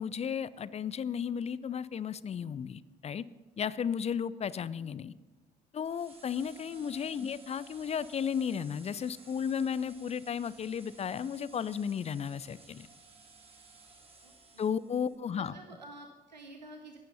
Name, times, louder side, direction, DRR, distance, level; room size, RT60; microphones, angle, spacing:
voice 1, 0.0-3.2 3.6-5.1 5.7-12.9 14.6-15.5, left 7 dB, 30° left, 18 dB, 0.5 m, -34 dB
sound 1, 5.8-15.1, right 3 dB, 25° right, 3.2 m, -56 dB
voice 2, 14.2-14.7 15.3-17.0, right 2 dB, 90° right, 4 dB, 0.7 m, -50 dB
14.5 x 10.0 x 5.5 m, 1.3 s
figure-of-eight pair, 45°, 21 cm